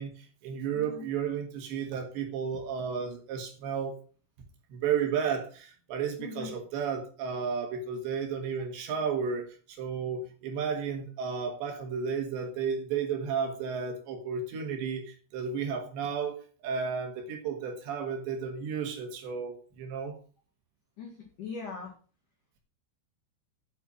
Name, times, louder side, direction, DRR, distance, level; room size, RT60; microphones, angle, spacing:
voice 1, 0.0-3.9 4.7-20.2, right 6 dB, 65° right, 4 dB, 3.5 m, -33 dB
voice 2, 6.2-6.5 21.0-21.9, left 5 dB, 55° left, -1 dB, 2.5 m, -40 dB
8.4 x 7.8 x 6.2 m, 0.39 s
omnidirectional pair, 5.9 m